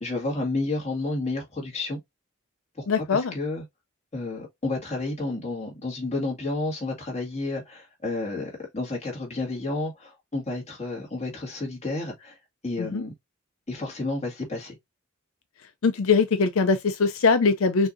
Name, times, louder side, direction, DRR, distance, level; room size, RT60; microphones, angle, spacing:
voice 1, 0.0-2.0 2.8-3.6 4.1-12.4 12.6-13.1 13.7-14.8, left 2 dB, 30° left, 2.0 m, -31 dB
voice 2, 2.9-3.3 12.8-13.0 15.8-17.9, left 4 dB, 80° left, 0.5 m, -22 dB
6.2 x 2.7 x 2.6 m
head